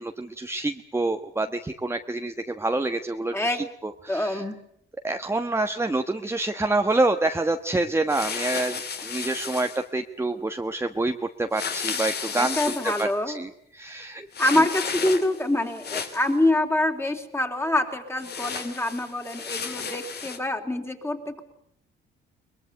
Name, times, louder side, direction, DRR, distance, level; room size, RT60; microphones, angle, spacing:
voice 1, 0.0-3.6 3.8-4.4 5.0-13.1 13.3-14.6, right 2 dB, 10° right, 6 dB, 1.2 m, -27 dB
voice 2, 3.3-3.7 4.1-4.6 12.4-13.4 14.4-21.4, left 1 dB, 10° left, 5 dB, 3.5 m, -25 dB
sound 1, 8.1-9.8 11.5-13.1 14.3-15.4 15.7-16.3 18.2-20.4, left 6 dB, 55° left, 3.2 m, -33 dB
23.0 x 21.0 x 8.2 m, 0.69 s
cardioid pair, 90°, 20 cm